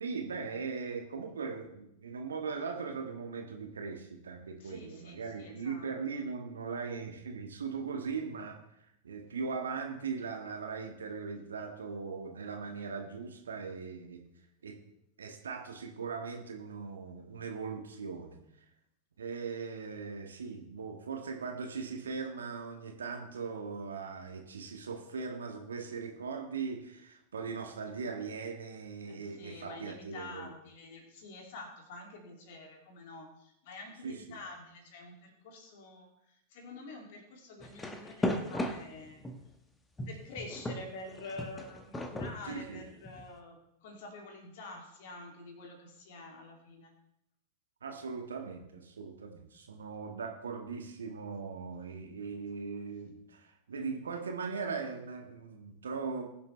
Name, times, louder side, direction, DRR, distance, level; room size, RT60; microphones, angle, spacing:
voice 1, 0.0-8.6 9.0-14.2 14.6-14.8 15.2-18.4 19.2-30.5 34.0-34.4 42.5-42.8 47.8-56.2, right 5 dB, 70° right, 3 dB, 1.7 m, -39 dB
voice 2, 4.6-6.2 29.0-39.2 40.1-46.9, left 2 dB, 50° left, 2 dB, 2.6 m, -48 dB
sound 1, 37.6-39.5 40.0-43.3, left 1 dB, 10° left, 1.1 m, -36 dB
20.5 x 7.0 x 3.3 m, 0.80 s
figure-of-eight pair, 90°, 0 cm